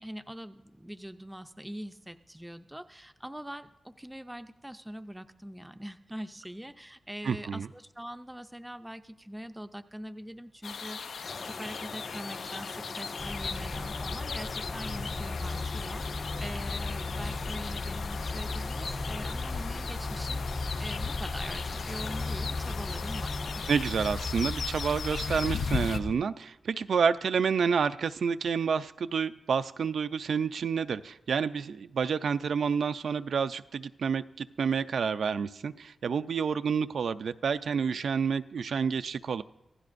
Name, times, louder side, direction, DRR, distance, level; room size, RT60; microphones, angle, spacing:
voice 1, 0.0-23.7, equal, 5° right, 9 dB, 0.5 m, -43 dB
voice 2, 7.2-7.7 23.7-39.4, right 6 dB, 75° right, 11 dB, 0.4 m, -29 dB
sound 1, 10.6-26.0, left 5 dB, 75° left, 0.5 m, -38 dB
sound 2, 11.2-23.7, left 3 dB, 50° left, 1.7 m, -43 dB
sound 3, 13.2-26.2, left 2 dB, 30° left, 0.8 m, -36 dB
26.5 x 16.0 x 2.6 m, 0.86 s
wide cardioid pair, 160°, 0 cm